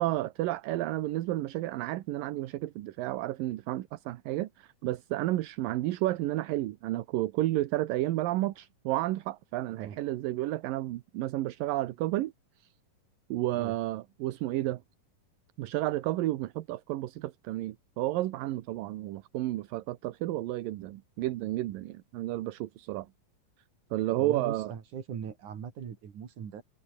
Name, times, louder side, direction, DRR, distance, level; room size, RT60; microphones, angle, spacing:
voice 1, 0.0-12.3 13.3-14.8 15.6-23.1 23.9-24.7, right 16 dB, 80° right, 2.7 m, -31 dB
voice 2, 24.2-26.6, right 7 dB, 60° right, 4.1 m, -40 dB
omnidirectional pair, 3.9 m